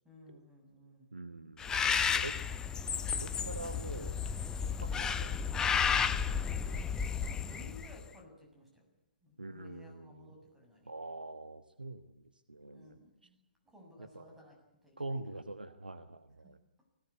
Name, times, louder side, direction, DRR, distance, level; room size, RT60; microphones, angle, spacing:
voice 1, 0.0-1.1 7.1-8.9 9.2-10.9 12.7-13.4 13.7-14.6 14.8-15.1 16.4-16.5, left 2 dB, 5° right, 0 dB, 7.3 m, -56 dB
voice 2, 1.1-2.3 3.1-4.2 4.8-5.8 6.7-7.3 9.4-10.3 10.9-13.0 14.0-14.4 15.0-16.6, right 2 dB, 80° right, 10 dB, 1.3 m, -45 dB
Bird, 1.6-8.0, left 6 dB, 15° left, 1.0 m, -32 dB
20.5 x 18.0 x 9.7 m, 0.89 s
figure-of-eight pair, 120°, 5 cm